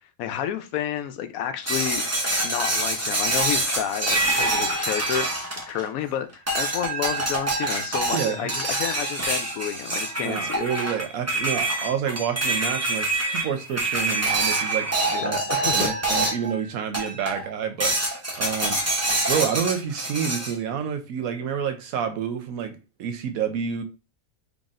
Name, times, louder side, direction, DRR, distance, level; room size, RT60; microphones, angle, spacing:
voice 1, 0.2-2.1 2.4-5.3 5.7-10.7 15.1-15.9, left 9 dB, 85° left, 1.0 m, -30 dB
sound 1, 1.7-6.0 6.5-16.5 16.9-17.4 17.8-20.5, right 2 dB, 15° right, 0.6 m, -26 dB
voice 2, 8.1-8.5 10.2-14.9 15.2-15.4 15.7-17.9 18.4-18.8 19.3-23.8, right 8 dB, 85° right, 1.1 m, -28 dB
3.9 x 3.5 x 2.5 m
omnidirectional pair, 1.4 m